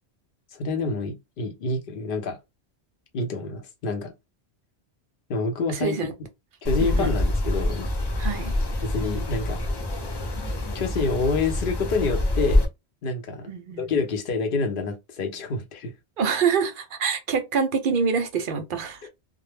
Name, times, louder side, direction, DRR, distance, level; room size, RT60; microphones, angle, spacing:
voice 1, 0.5-2.4 3.1-4.1 5.3-6.0 6.6-7.8 8.8-9.6 10.7-12.7 13.0-13.5 13.8-15.9 19.0-19.1, left 3 dB, 60° left, 0.7 m, -27 dB
voice 2, 5.7-6.1 6.8-7.1 8.2-8.5 13.5-13.8 16.2-19.0, right 6 dB, 60° right, 0.7 m, -25 dB
sound 1, 6.6-12.6, left 1 dB, 40° left, 0.3 m, -26 dB
2.1 x 2.0 x 3.2 m
omnidirectional pair, 1.1 m